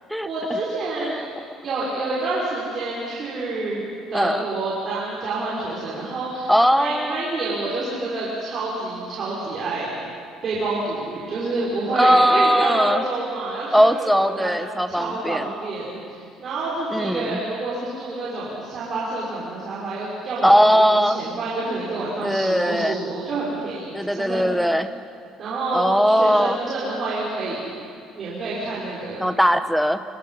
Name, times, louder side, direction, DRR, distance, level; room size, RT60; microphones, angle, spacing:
voice 1, 0.2-1.2 1.6-3.8 4.1-9.9 10.4-14.5 14.9-24.4 25.4-27.6 28.1-29.3, right 2 dB, 35° right, -7 dB, 5.7 m, -28 dB
voice 2, 4.1-4.5 6.5-7.2 11.9-13.0 13.7-15.5 16.9-17.4 20.4-21.2 22.2-23.0 23.9-24.9 25.7-26.6 29.2-30.0, equal, ahead, 10 dB, 1.0 m, -19 dB
29.5 x 26.0 x 5.7 m, 2.3 s
cardioid pair, 150°, 0 cm